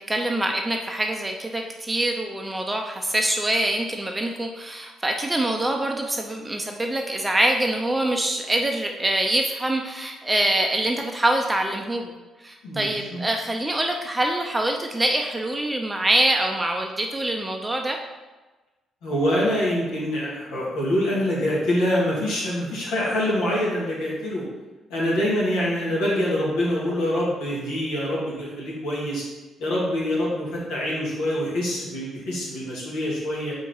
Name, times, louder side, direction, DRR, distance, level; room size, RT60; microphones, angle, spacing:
voice 1, 0.0-18.0, right 1 dB, 15° right, 3 dB, 0.7 m, -25 dB
voice 2, 12.6-13.2 19.0-24.4 24.9-29.2 29.6-33.5, left 1 dB, 70° left, -6 dB, 2.0 m, -25 dB
4.6 x 4.3 x 5.5 m, 1.2 s
figure-of-eight pair, 45°, 0 cm